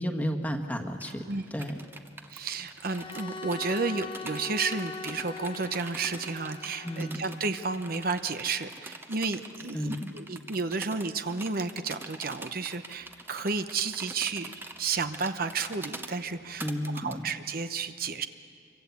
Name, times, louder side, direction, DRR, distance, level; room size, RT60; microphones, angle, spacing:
voice 1, 0.0-1.8 6.8-7.2 9.7-10.1 16.6-17.3, equal, 10° left, 5 dB, 1.5 m, -32 dB
sound 1, 1.0-17.1, right 2 dB, 10° right, 1.1 m, -44 dB
voice 2, 2.3-14.5 14.8-16.7 16.9-18.3, right 4 dB, 55° right, 9 dB, 0.9 m, -32 dB
Bowed string instrument, 2.9-7.9, left 3 dB, 30° left, 0.7 m, -41 dB
26.5 x 24.0 x 8.4 m, 2.2 s
head